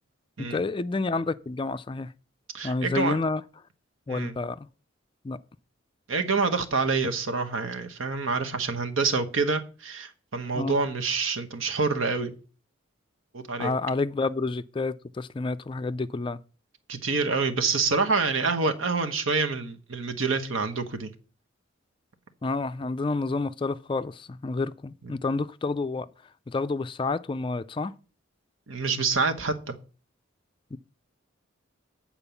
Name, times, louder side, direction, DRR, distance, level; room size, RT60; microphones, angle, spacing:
voice 1, 0.4-2.1 2.6-3.4 4.1-4.7 5.2-5.4 10.5-10.8 13.6-16.4 22.4-27.9 30.7-30.8, left 3 dB, 25° left, 0.3 m, -29 dB
voice 2, 2.5-3.2 4.1-4.3 6.1-12.3 13.3-13.7 16.9-21.1 28.7-29.7, right 4 dB, 85° right, 1.1 m, -27 dB
8.9 x 4.4 x 6.9 m
head